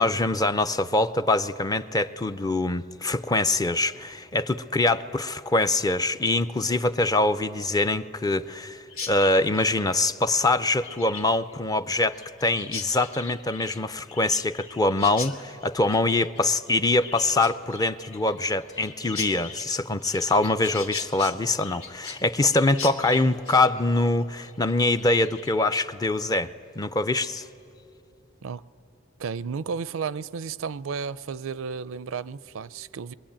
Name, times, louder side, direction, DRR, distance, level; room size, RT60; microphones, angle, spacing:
voice 1, 0.0-27.5, left 2 dB, 20° left, 11 dB, 0.5 m, -24 dB
Chirp tweet, 8.9-25.8, left 5 dB, 80° left, 1.7 m, -40 dB
voice 2, 29.2-33.1, right 5 dB, 70° right, 17 dB, 0.5 m, -33 dB
23.0 x 21.5 x 8.8 m, 2.7 s
head